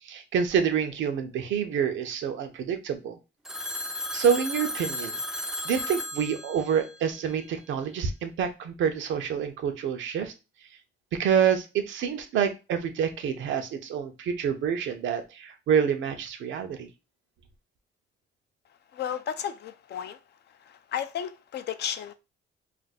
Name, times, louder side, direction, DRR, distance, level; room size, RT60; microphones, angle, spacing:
voice 1, 0.0-3.2 4.1-5.2 5.6-10.3 11.1-16.9, right 7 dB, 75° right, 0.6 m, -27 dB
Telephone, 3.4-7.7, left 1 dB, 5° right, 0.4 m, -35 dB
voice 2, 18.9-20.2 20.7-22.1, left 9 dB, 60° left, 0.4 m, -33 dB
2.5 x 2.2 x 4.0 m
cardioid pair, 90°, 20 cm